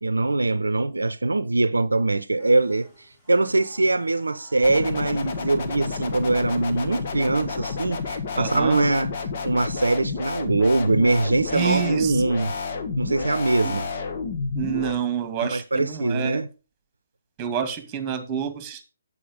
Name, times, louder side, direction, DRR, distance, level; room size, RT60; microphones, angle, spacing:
voice 1, 0.0-9.1 9.4-12.5 13.0-13.9 15.4-16.5, right 2 dB, 85° right, 0.6 m, -22 dB
sound 1, 2.4-7.8, equal, 20° left, 6.2 m, -52 dB
sound 2, 4.6-14.9, left 4 dB, 45° left, 1.7 m, -30 dB
voice 2, 8.4-8.8 11.5-12.2 13.6-13.8 14.5-16.4 17.4-18.8, right 8 dB, 20° right, 2.0 m, -28 dB
8.7 x 8.5 x 3.7 m
figure-of-eight pair, 140°, 0 cm